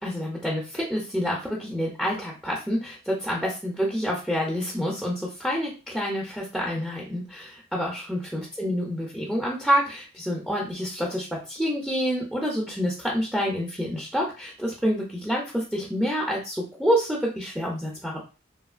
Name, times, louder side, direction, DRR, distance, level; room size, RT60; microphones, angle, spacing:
voice 1, 0.0-18.2, equal, ahead, -3 dB, 0.4 m, -28 dB
2.8 x 2.4 x 2.4 m, 0.33 s
head